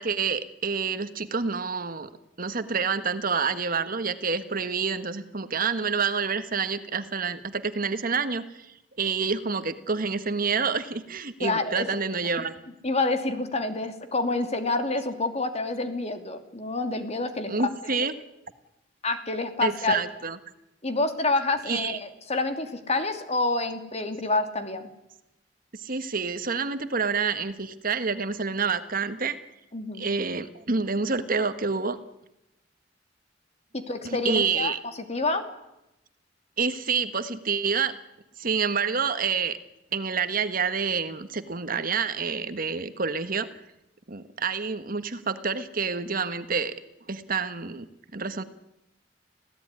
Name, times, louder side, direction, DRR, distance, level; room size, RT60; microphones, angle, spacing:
voice 1, 0.0-2.1 2.4-12.5 17.5-18.1 19.6-20.4 21.7-22.0 25.7-29.4 30.0-32.0 34.0-34.8 36.6-37.9 38.4-39.6 39.9-43.5 44.1-46.7 47.1-47.9 48.1-48.4, right 5 dB, 50° right, 11 dB, 1.5 m, -28 dB
voice 2, 11.4-11.9 12.8-17.5 18.0-18.1 19.0-20.0 20.8-24.9 29.7-30.1 33.7-34.7 35.1-35.4, left 2 dB, 35° left, 8 dB, 2.7 m, -28 dB
26.0 x 17.0 x 9.7 m, 0.89 s
head